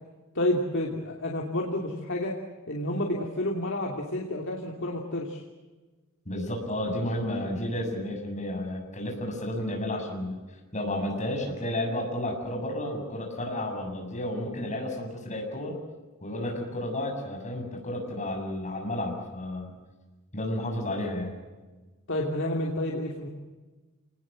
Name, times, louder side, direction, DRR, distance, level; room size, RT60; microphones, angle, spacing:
voice 1, 0.3-2.3 2.7-5.4 22.1-23.3, left 1 dB, 60° left, -1 dB, 2.9 m, -30 dB
voice 2, 6.3-10.4 10.7-15.8 16.2-19.7 20.3-21.3, left 1 dB, 35° left, 1 dB, 7.4 m, -32 dB
28.0 x 20.0 x 7.7 m, 1.2 s
head